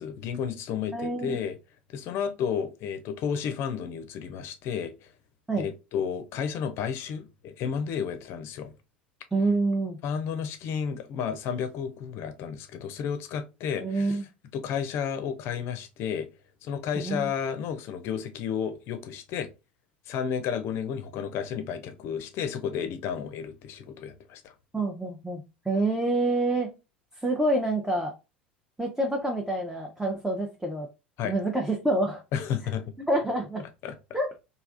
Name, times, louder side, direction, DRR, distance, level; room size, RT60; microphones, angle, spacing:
voice 1, 0.0-1.5 1.9-4.9 5.6-8.7 10.0-14.2 14.5-16.3 16.6-19.5 20.1-24.5 31.2-31.3 32.3-32.8 33.8-33.9, left 7 dB, 45° left, 0.6 m, -32 dB
voice 2, 0.9-1.4 5.5-5.7 9.3-10.0 13.8-14.3 16.9-17.2 24.7-26.7 27.2-28.1 28.8-30.9 31.2-32.2 33.1-33.6 34.1-34.3, right 2 dB, 5° right, 0.6 m, -27 dB
3.3 x 2.4 x 2.4 m
figure-of-eight pair, 75°, 6 cm